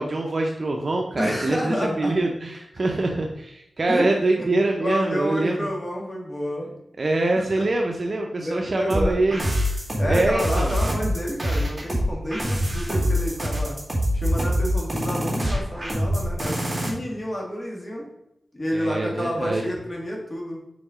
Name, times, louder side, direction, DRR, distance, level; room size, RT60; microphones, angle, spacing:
voice 1, 0.0-5.7 7.0-9.4 10.1-10.7 18.7-19.7, right 2 dB, 50° right, 1 dB, 0.7 m, -24 dB
voice 2, 1.2-2.2 3.9-4.1 4.4-6.7 7.6-7.7 8.4-9.2 10.0-13.8 14.1-18.1 18.5-20.6, equal, 35° left, -2 dB, 1.9 m, -29 dB
sound 1, 8.9-16.9, equal, 15° right, 2.4 m, -24 dB
5.2 x 4.7 x 5.0 m, 0.81 s
wide cardioid pair, 85°, 0 cm